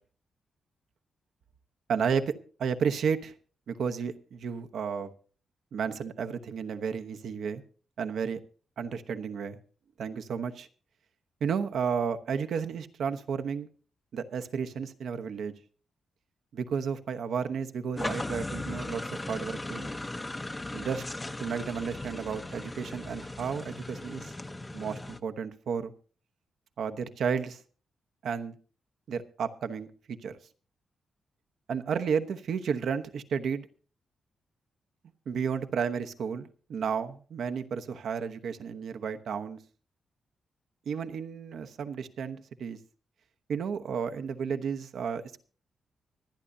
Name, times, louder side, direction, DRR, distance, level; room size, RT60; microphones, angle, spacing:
voice 1, 1.9-2.3 2.6-3.3 3.7-5.1 5.7-7.6 8.0-8.4 8.8-9.6 10.0-10.7 11.4-13.7 14.1-15.5 16.5-19.9 20.7-21.0 21.4-24.3 24.7-25.9 26.8-27.6 28.2-28.5 29.1-30.4 31.7-33.7 35.3-39.6 40.9-42.8 43.5-45.4, right 6 dB, 65° right, 8 dB, 1.0 m, -32 dB
sound 1, 18.0-25.2, left 2 dB, 15° left, 0.7 m, -37 dB
25.0 x 9.9 x 2.7 m, 0.40 s
cardioid pair, 125°, 0 cm